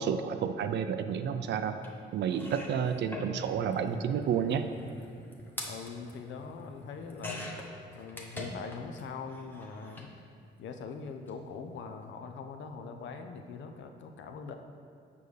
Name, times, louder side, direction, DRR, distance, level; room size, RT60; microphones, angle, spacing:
voice 1, 0.0-1.8 2.1-4.7, right 7 dB, 65° right, 9 dB, 0.4 m, -30 dB
sound 1, 1.8-1.9 2.3-9.0 9.3-10.1 11.1-11.3 11.6-11.7, left 1 dB, 10° left, 0.9 m, -44 dB
voice 2, 5.6-7.5 8.0-10.1 10.6-14.5, left 5 dB, 70° left, 6 dB, 0.6 m, -42 dB
6.8 x 5.4 x 3.2 m, 2.3 s
cardioid pair, 90°, 20 cm